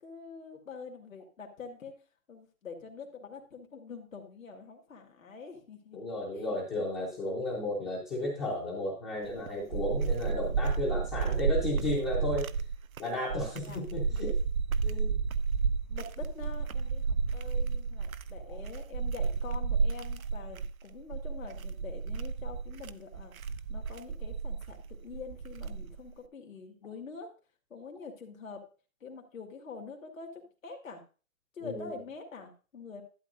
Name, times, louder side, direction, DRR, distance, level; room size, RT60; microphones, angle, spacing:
voice 1, 0.0-1.9 2.3-6.0 6.3-6.6 10.9-11.1 13.6-13.8 15.9-23.3 23.7-27.3 27.7-28.6 29.0-31.0 31.5-33.0, left 5 dB, 70° left, 2 dB, 2.2 m, -45 dB
voice 2, 5.9-12.5 13.0-14.3 14.8-15.2 31.6-32.0, left 1 dB, 5° left, -5 dB, 0.7 m, -34 dB
sound 1, 9.2-26.1, right 5 dB, 80° right, 0.8 m, -32 dB
12.0 x 8.9 x 2.6 m, 0.36 s
hypercardioid pair, 160°, 41 cm